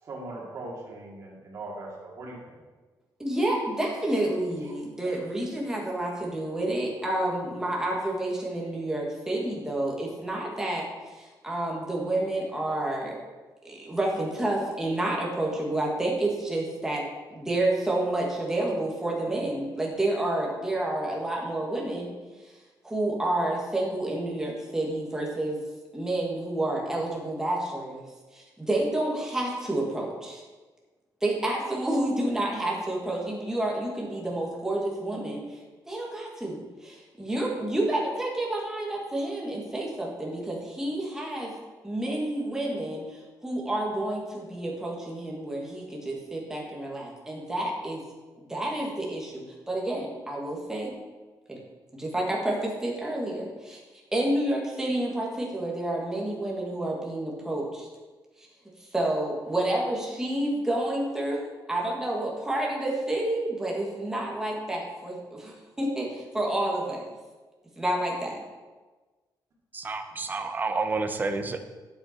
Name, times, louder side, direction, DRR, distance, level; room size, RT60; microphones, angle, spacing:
voice 1, 0.0-2.4 4.5-4.7 5.0-5.2 70.1-70.2, right 2 dB, 40° right, -4 dB, 2.3 m, -40 dB
voice 2, 3.2-13.2 13.6-17.0 17.3-22.1 22.8-25.6 25.9-28.0 28.3-30.4 31.2-35.6 35.9-41.5 41.8-48.0 48.5-50.9 51.5-51.6 51.9-53.8 54.1-57.9 58.9-67.0 67.8-68.4, right 1 dB, 5° right, -2 dB, 1.7 m, -29 dB
voice 3, 69.7-71.7, right 3 dB, 25° right, 7 dB, 0.7 m, -30 dB
8.9 x 7.6 x 4.3 m, 1.3 s
cardioid pair, 170°, 8 cm